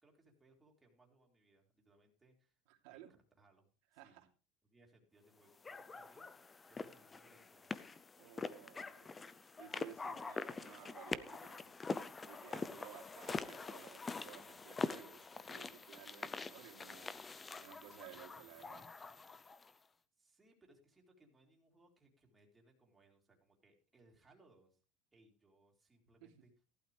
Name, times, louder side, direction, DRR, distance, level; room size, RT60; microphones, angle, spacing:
voice 1, 0.0-2.6 2.9-3.7 3.9-4.3 4.6-7.8 20.2-24.8 25.1-26.5, right 2 dB, 10° right, 0 dB, 3.5 m, -69 dB
voice 2, 2.7-3.1 3.9-4.3 8.2-11.7 12.2-17.2 17.5-18.9 26.2-26.4, right 12 dB, 65° right, 0 dB, 3.0 m, -57 dB
sound 1, 5.6-19.7, left 4 dB, 15° left, 0.5 m, -45 dB
15.5 x 11.5 x 3.3 m, 0.33 s
cardioid pair, 155°, 0 cm